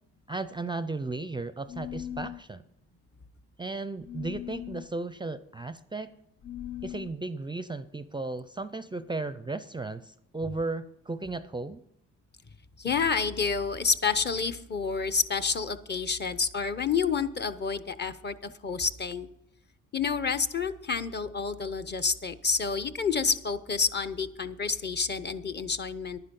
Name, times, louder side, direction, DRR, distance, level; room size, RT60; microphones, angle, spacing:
voice 1, 0.3-2.6 3.6-6.1 6.8-11.8, right 3 dB, 15° right, 13 dB, 0.5 m, -35 dB
sound 1, 1.7-2.4 4.0-4.9 6.4-7.2, left 11 dB, 70° left, 0.7 m, -39 dB
voice 2, 12.8-19.3 19.9-26.2, left 5 dB, 35° left, 11 dB, 0.9 m, -29 dB
11.0 x 10.0 x 5.3 m, 0.80 s
cardioid pair, 90°, 30 cm